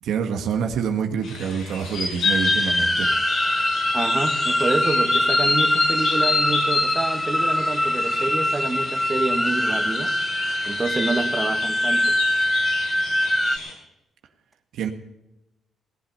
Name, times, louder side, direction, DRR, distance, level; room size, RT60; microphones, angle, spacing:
voice 1, 0.0-3.1 14.7-14.9, right 7 dB, 80° right, 4 dB, 1.5 m, -26 dB
sound 1, 1.2-13.7, left 4 dB, 80° left, 6.6 m, -30 dB
sound 2, 2.2-13.6, left 1 dB, 5° left, 0.5 m, -23 dB
voice 2, 3.9-10.1 10.6-12.1, right 3 dB, 25° right, 5 dB, 1.7 m, -27 dB
18.0 x 8.6 x 5.5 m, 0.92 s
cardioid pair, 90°, 0 cm